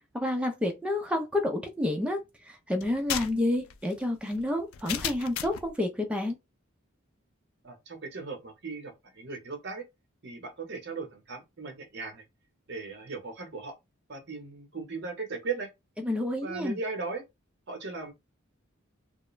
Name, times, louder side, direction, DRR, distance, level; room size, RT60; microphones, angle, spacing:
voice 1, 0.1-6.4 16.0-16.8, left 1 dB, 5° right, 0.4 m, -29 dB
sound 1, 2.8-5.7, left 10 dB, 85° left, 0.4 m, -35 dB
voice 2, 7.6-9.8 10.2-12.2 12.7-13.7 14.1-15.7 16.4-17.2 17.7-18.1, right 4 dB, 55° right, 0.8 m, -37 dB
2.3 x 2.1 x 3.0 m
head